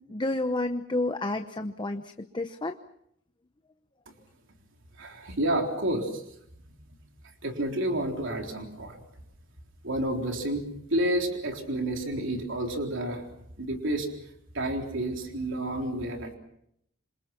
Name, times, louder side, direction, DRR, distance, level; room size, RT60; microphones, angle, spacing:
voice 1, 0.0-2.8, left 2 dB, 20° left, 7 dB, 1.0 m, -30 dB
voice 2, 5.0-6.2 7.2-9.0 9.8-10.6 10.9-13.3 13.6-14.1 14.5-16.4, right 1 dB, 65° right, 2 dB, 3.9 m, -30 dB
27.5 x 26.5 x 5.9 m, 0.73 s
head